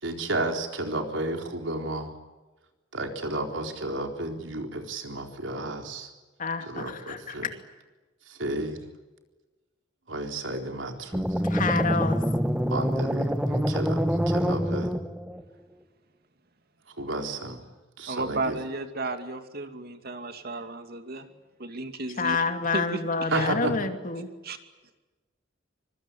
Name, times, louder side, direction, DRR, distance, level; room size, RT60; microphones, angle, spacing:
voice 1, 0.0-2.1 2.9-6.1 6.7-7.5 8.3-8.8 10.1-11.3 12.7-14.9 17.0-17.6 18.0-18.6 23.3-23.7, right 2 dB, 80° right, 4 dB, 4.1 m, -32 dB
voice 2, 6.4-7.3 11.4-12.2 22.2-24.3, left 4 dB, 45° left, 6 dB, 2.7 m, -28 dB
sound 1, 11.1-15.4, equal, 5° right, 1.6 m, -26 dB
voice 3, 18.1-21.3 21.6-22.4 22.7-23.5 24.4-24.6, right 3 dB, 55° right, 8 dB, 2.6 m, -34 dB
25.5 x 23.5 x 8.8 m, 1.2 s
head